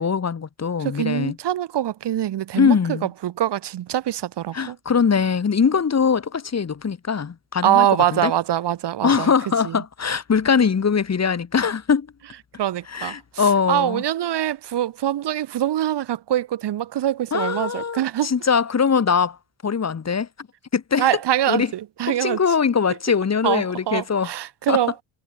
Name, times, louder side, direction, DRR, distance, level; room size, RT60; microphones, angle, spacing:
voice 1, 0.0-1.3 2.5-3.1 4.5-7.8 8.1-8.3 9.0-12.1 12.9-14.0 17.3-19.4 19.6-20.3 20.7-21.1 21.5-21.7 22.2-24.3 24.7-24.8, left 6 dB, 35° left, 3.5 m, -21 dB
voice 2, 0.8-4.8 7.6-9.3 9.6-9.8 12.6-18.3 21.0-22.4 23.4-24.9, right 12 dB, 55° right, 2.3 m, -24 dB
cardioid pair, 95°, 47 cm